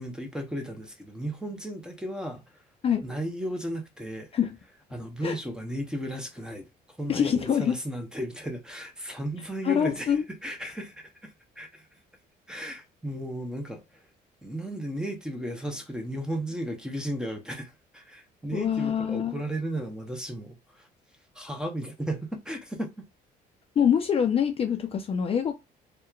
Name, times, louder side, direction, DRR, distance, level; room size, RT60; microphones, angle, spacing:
voice 1, 0.0-2.4 3.0-4.3 4.9-6.7 7.0-10.1 10.4-11.9 12.5-14.0 14.4-20.9 21.3-23.0, right 1 dB, 5° right, 0.6 m, -35 dB
voice 2, 7.1-7.8 9.6-10.2 18.5-19.4 23.8-25.5, left 8 dB, 35° left, 0.4 m, -25 dB
2.8 x 2.1 x 2.3 m
cardioid pair, 110°, 17 cm